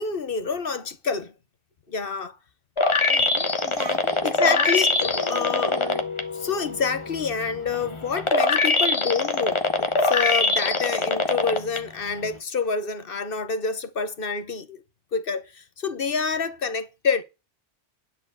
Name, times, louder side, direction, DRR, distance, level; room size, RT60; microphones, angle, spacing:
voice 1, 0.0-1.3 1.9-2.4 4.2-5.8 6.4-14.8 15.1-17.2, left 5 dB, 50° left, 1.1 m, -27 dB
sound 1, 2.8-6.2 6.7-11.8 12.2-12.3, left 3 dB, 25° left, 1.0 m, -22 dB
voice 2, 3.1-6.0, right 3 dB, 80° right, 1.9 m, -38 dB
sound 2, 5.5-10.3, left 5 dB, 80° left, 2.1 m, -39 dB
10.0 x 4.4 x 7.5 m
omnidirectional pair, 1.2 m